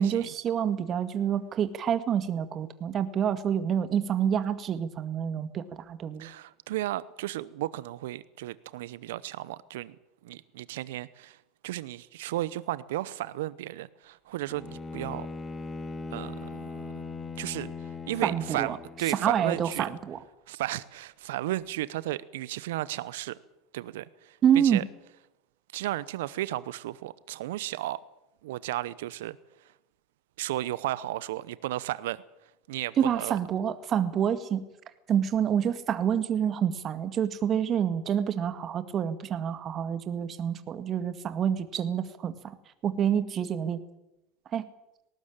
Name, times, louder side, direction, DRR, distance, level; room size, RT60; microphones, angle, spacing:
voice 1, 0.0-6.3 18.2-18.8 19.1-20.2 24.4-24.8 33.0-34.6 35.1-42.6 42.8-43.8 44.5-44.7, right 8 dB, 45° right, 10 dB, 2.0 m, -27 dB
voice 2, 6.2-9.9 10.2-11.4 11.6-15.3 16.1-16.9 17.4-19.9 20.5-23.4 23.7-24.4 24.6-24.8 25.7-28.0 28.4-29.4 30.4-32.2 32.7-33.4, right 15 dB, 75° right, 18 dB, 0.8 m, -34 dB
Bowed string instrument, 14.5-19.3, left 3 dB, 25° left, 2.3 m, -39 dB
19.0 x 18.5 x 8.9 m, 0.91 s
hypercardioid pair, 75°, 0 cm